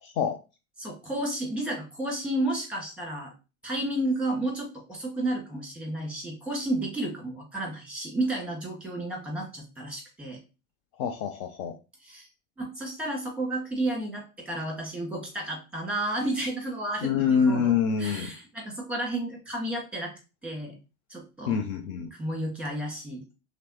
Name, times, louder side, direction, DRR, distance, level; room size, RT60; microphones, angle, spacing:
voice 1, 0.0-0.4 11.0-11.7 17.0-18.3 21.5-22.1, left 6 dB, 45° left, 5 dB, 0.5 m, -26 dB
voice 2, 0.8-3.3 3.6-10.4 12.0-12.3 12.6-17.7 18.0-20.1 20.4-20.8 21.1-21.6 22.2-23.2, right 1 dB, 5° right, -1 dB, 1.7 m, -32 dB
5.9 x 2.0 x 2.9 m, 0.30 s
figure-of-eight pair, 75°, 41 cm